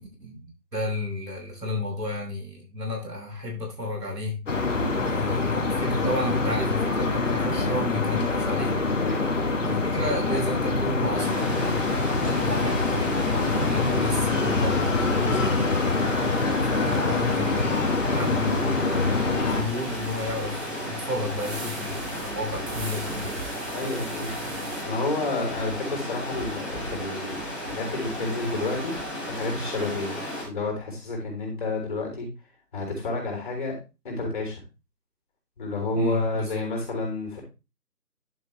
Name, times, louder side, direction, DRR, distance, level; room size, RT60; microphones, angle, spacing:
voice 1, 0.2-4.4 5.0-8.8 9.6-15.7 16.7-23.4 35.9-36.6, left 1 dB, 80° right, 0 dB, 5.5 m, -32 dB
sound 1, 4.5-19.6, left 3 dB, 50° left, 1.9 m, -25 dB
voice 2, 9.0-9.5 23.7-24.6 24.8-27.4 27.7-29.0 29.3-30.2 30.4-32.3 32.7-33.8 34.0-34.6 35.6-37.4, left 2 dB, 30° left, 1 dB, 3.7 m, -30 dB
Stream, 11.1-30.4, equal, ahead, 2.5 m, -34 dB
sound 2, 19.5-24.8, right 2 dB, 55° right, 2.7 m, -41 dB
11.0 x 6.4 x 3.3 m, 0.28 s
figure-of-eight pair, 165°, 48 cm